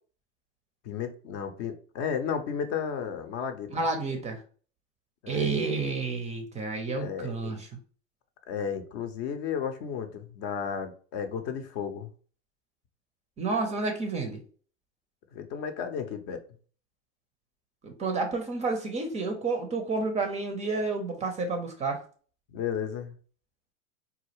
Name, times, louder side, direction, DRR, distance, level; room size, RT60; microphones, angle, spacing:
voice 1, 0.8-3.7 5.2-5.5 6.9-7.6 8.5-12.1 15.3-16.4 22.5-23.1, left 7 dB, 45° left, 7 dB, 0.6 m, -33 dB
voice 2, 3.7-4.4 5.3-7.7 13.4-14.4 17.8-22.0, right 3 dB, 20° right, 4 dB, 0.5 m, -30 dB
4.0 x 2.3 x 3.0 m, 0.42 s
hypercardioid pair, 90°, 37 cm